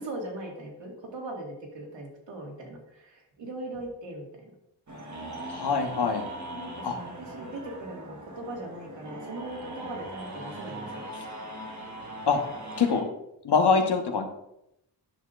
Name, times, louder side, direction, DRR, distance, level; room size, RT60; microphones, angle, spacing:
voice 1, 0.0-4.3 6.5-11.0, right 1 dB, 85° right, -1 dB, 2.1 m, -39 dB
sound 1, 4.9-13.0, right 1 dB, 40° right, 1.4 m, -40 dB
voice 2, 5.5-6.3 6.8-7.0 12.3-12.4 12.8-13.0 13.4-14.3, left 5 dB, 65° left, 5 dB, 1.1 m, -24 dB
9.8 x 6.6 x 2.5 m, 0.81 s
wide cardioid pair, 125°, 43 cm